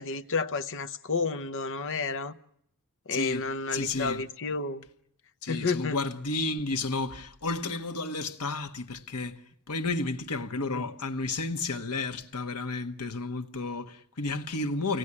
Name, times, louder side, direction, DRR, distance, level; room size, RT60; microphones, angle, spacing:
voice 1, 0.0-2.4 3.1-4.8 5.5-6.0 10.7-10.8, left 4 dB, 60° left, 0.9 m, -31 dB
voice 2, 3.1-4.2 5.4-9.4 9.7-15.0, left 3 dB, 85° left, 1.3 m, -32 dB
24.0 x 18.0 x 9.8 m
head